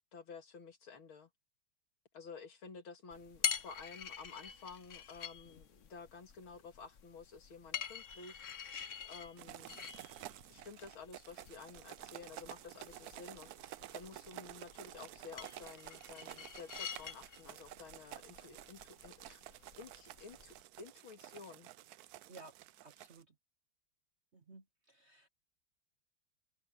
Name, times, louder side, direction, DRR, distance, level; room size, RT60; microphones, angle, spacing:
voice 1, 0.1-1.3 2.1-9.9 10.5-19.4 19.8-21.7, left 5 dB, 80° left, 3.1 m, -52 dB
sound 1, 3.1-20.6, left 7 dB, 45° left, 1.1 m, -46 dB
sound 2, 9.4-23.2, right 14 dB, 85° right, 0.8 m, -52 dB
voice 2, 22.8-23.3 24.3-25.3, right 3 dB, 45° right, 0.9 m, -56 dB
omnidirectional pair, 2.2 m